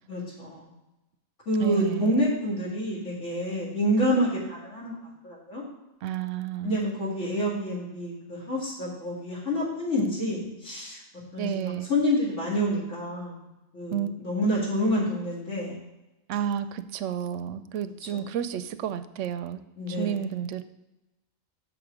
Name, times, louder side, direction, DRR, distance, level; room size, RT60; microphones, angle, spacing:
voice 1, 0.1-0.7 1.5-4.9 5.2-5.6 6.6-11.0 11.3-13.5 13.7-15.8 18.1-18.2 19.8-20.3, equal, 65° left, -5 dB, 2.4 m, -28 dB
voice 2, 1.6-2.2 6.0-6.9 10.0-10.1 11.4-11.9 13.9-14.1 16.3-19.6 19.9-20.6, right 9 dB, 70° right, 11 dB, 0.9 m, -31 dB
6.7 x 5.9 x 5.0 m, 1.0 s
omnidirectional pair, 1.4 m